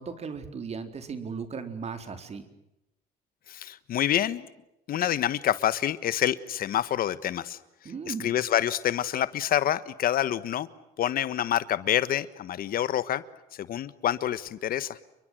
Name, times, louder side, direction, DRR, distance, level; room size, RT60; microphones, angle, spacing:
voice 1, 0.0-2.5 7.8-8.3, right 5 dB, 40° right, 9 dB, 4.1 m, -36 dB
voice 2, 3.5-4.5 4.9-7.6 8.1-10.7 11.0-13.2 13.6-15.0, left 11 dB, 60° left, 15 dB, 1.4 m, -27 dB
30.0 x 23.0 x 7.7 m, 0.88 s
cardioid pair, 110°, 17 cm